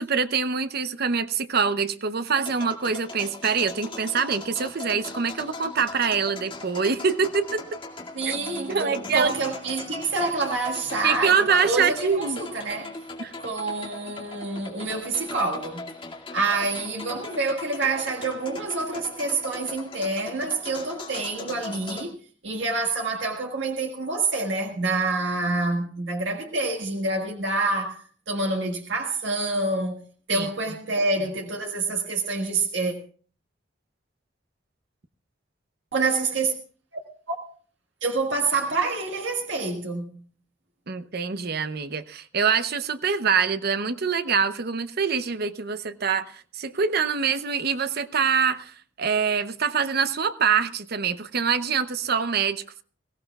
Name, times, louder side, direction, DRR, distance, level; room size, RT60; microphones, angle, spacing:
voice 1, 0.0-7.8 8.2-8.3 8.7-9.3 11.0-12.4 13.2-13.3 30.3-30.5 40.9-52.8, right 6 dB, 55° right, 0.8 m, -25 dB
sound 1, 2.4-22.1, left 3 dB, 30° left, 2.2 m, -39 dB
voice 2, 8.1-13.0 13.4-15.8 16.3-22.1 22.4-28.0 28.3-30.0 30.3-32.9 35.9-36.5 36.9-37.0 37.3-37.4 38.0-40.1, right 3 dB, 75° right, 1.7 m, -27 dB
22.0 x 16.0 x 2.3 m
head